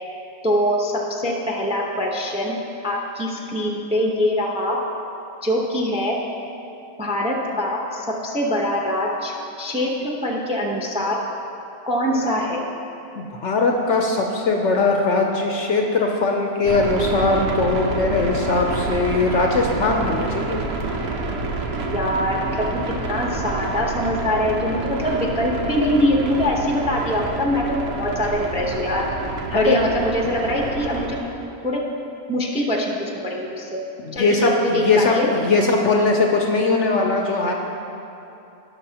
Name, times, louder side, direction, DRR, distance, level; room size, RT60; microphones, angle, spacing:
voice 1, 0.4-2.6 2.8-4.8 5.4-6.2 7.0-11.2 11.9-12.6 21.9-22.7 23.0-29.1 29.5-31.2 31.6-31.8 32.3-33.8 34.1-35.3, left 1 dB, 5° right, -1 dB, 0.6 m, -23 dB
voice 2, 13.2-20.6 29.5-29.8 34.0-37.5, left 3 dB, 60° left, 1 dB, 0.9 m, -20 dB
sound 1, 16.6-31.2, right 3 dB, 75° right, 1.2 m, -28 dB
17.0 x 6.0 x 2.9 m, 2.8 s
omnidirectional pair, 1.6 m